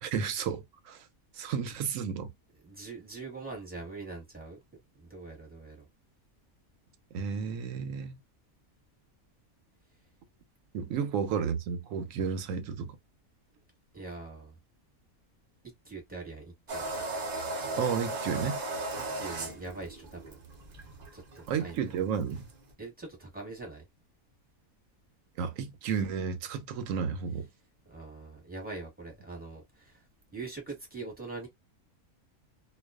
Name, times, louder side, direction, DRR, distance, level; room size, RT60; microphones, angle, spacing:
voice 1, 0.0-1.0 1.4-2.3 7.1-8.2 10.7-13.0 17.8-18.6 21.5-22.5 25.4-27.5, right 6 dB, 70° right, 0.9 m, -32 dB
voice 2, 2.6-4.6 4.9-5.8 13.9-14.5 15.8-17.0 19.1-20.4 21.1-21.8 22.8-23.8 27.8-30.0 30.3-31.5, right 3 dB, 5° right, 0.9 m, -43 dB
sound 1, 16.7-22.7, right 2 dB, 55° right, 0.5 m, -36 dB
2.3 x 2.3 x 2.3 m
omnidirectional pair, 1.6 m